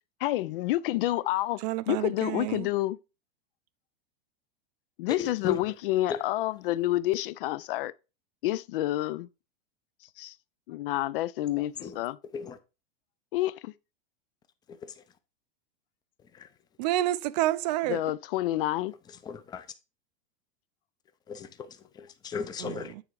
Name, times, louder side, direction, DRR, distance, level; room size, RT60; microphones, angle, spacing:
voice 1, 0.2-1.6 1.9-3.0 5.0-7.9 8.4-9.3 10.2-10.3 10.7-12.2 13.3-13.7 17.9-18.9, left 15 dB, 60° left, 0.5 m, -29 dB
voice 2, 1.6-2.7 16.8-18.0 22.6-23.0, right 15 dB, 45° right, 0.4 m, -29 dB
voice 3, 5.2-5.6 6.1-6.2 11.8-12.0 12.3-12.6 14.8-14.9 16.3-16.5 19.2-19.7 21.3-22.9, left 7 dB, 15° left, 0.5 m, -35 dB
9.0 x 3.5 x 4.7 m
supercardioid pair, 150°, 30 cm